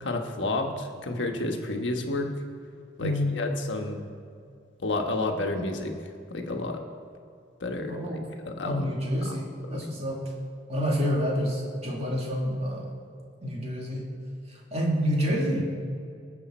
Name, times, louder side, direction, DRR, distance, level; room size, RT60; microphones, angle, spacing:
voice 1, 0.0-2.3 3.0-4.0 4.8-5.9 6.3-6.8 7.6-8.0 8.4-8.9 9.3-9.4 9.7-9.9, left 2 dB, 75° left, 3 dB, 1.3 m, -30 dB
voice 2, 3.0-3.4 7.9-8.2 8.6-10.3 10.7-13.0 13.4-14.1 14.7-15.6, equal, 35° right, -2 dB, 2.3 m, -28 dB
20.0 x 7.1 x 4.4 m, 2.4 s
head